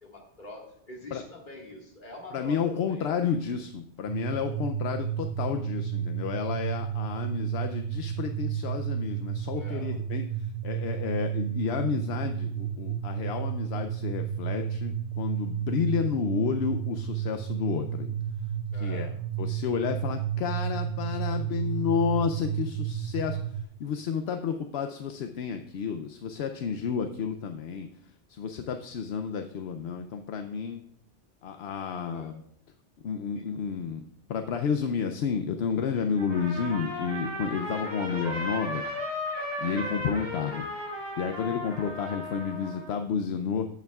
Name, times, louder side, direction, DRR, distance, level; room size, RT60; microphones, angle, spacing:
voice 1, 0.0-3.2 9.6-10.0 18.7-19.2 32.1-32.4 33.3-33.5, left 1 dB, 45° left, -1 dB, 2.0 m, -46 dB
voice 2, 2.3-18.2 18.8-19.1 19.4-27.9 28.3-30.8 31.4-32.4 33.0-38.8 39.6-40.7 41.2-43.7, left 6 dB, 70° left, 6 dB, 0.8 m, -31 dB
sound 1, 4.1-23.6, right 9 dB, 65° right, 0.3 m, -32 dB
Trumpet, 36.2-42.9, left 1 dB, 20° right, 4.4 m, -35 dB
14.0 x 8.2 x 2.3 m, 0.69 s
omnidirectional pair, 1.2 m